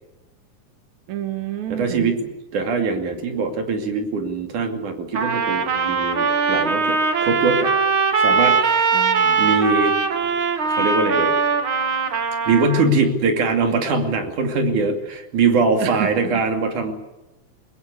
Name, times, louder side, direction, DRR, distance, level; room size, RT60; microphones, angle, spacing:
voice 1, 1.1-2.1 8.9-9.5 15.8-16.4, right 11 dB, 70° right, 7 dB, 2.7 m, -29 dB
voice 2, 1.7-2.2 2.5-7.7 8.2-9.0 9.4-10.0 10.6-11.3 12.5-16.9, right 4 dB, 90° right, 4 dB, 4.1 m, -22 dB
Trumpet, 5.1-12.9, right 5 dB, 45° right, 2.3 m, -20 dB
22.0 x 21.5 x 8.3 m, 1.0 s
omnidirectional pair, 3.4 m